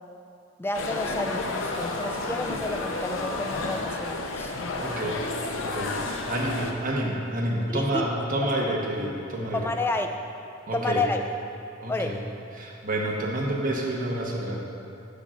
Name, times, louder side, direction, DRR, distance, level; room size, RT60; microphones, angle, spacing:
voice 1, 0.6-4.5 5.0-5.1 7.7-8.0 9.5-10.2 10.7-11.3 11.9-12.2, left 2 dB, 10° left, 5 dB, 0.3 m, -30 dB
sound 1, 0.7-6.7, left 2 dB, 80° left, 0.6 m, -31 dB
voice 2, 4.8-5.2 5.5-9.6 10.7-11.0 11.8-12.2 12.5-14.6, right 1 dB, 45° right, -2 dB, 1.0 m, -29 dB
5.7 x 5.2 x 4.9 m, 2.6 s
head